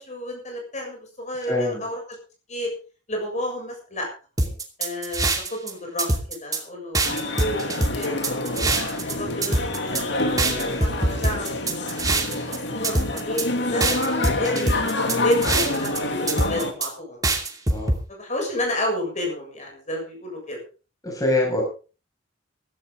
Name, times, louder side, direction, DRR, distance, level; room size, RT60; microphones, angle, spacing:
voice 1, 0.0-2.0 2.5-2.7 3.1-4.1 4.8-7.6 7.9-8.6 9.0-10.4 10.8-11.7 12.4-14.0 14.4-17.4 18.1-20.6, left 1 dB, 40° left, 2 dB, 7.0 m, -30 dB
voice 2, 1.4-1.8 17.7-17.9 21.0-21.6, left 2 dB, 20° left, 0 dB, 6.4 m, -24 dB
sound 1, 4.4-5.7 6.0-6.6 6.9-9.1 9.4-10.0 10.4-12.6 12.8-13.5 13.8-16.0 16.3-16.9 17.2-18.0, right 2 dB, 20° right, 2.6 m, -23 dB
sound 2, 7.0-16.7, left 2 dB, 65° left, 2.7 m, -27 dB
16.5 x 14.5 x 3.8 m, 0.35 s
head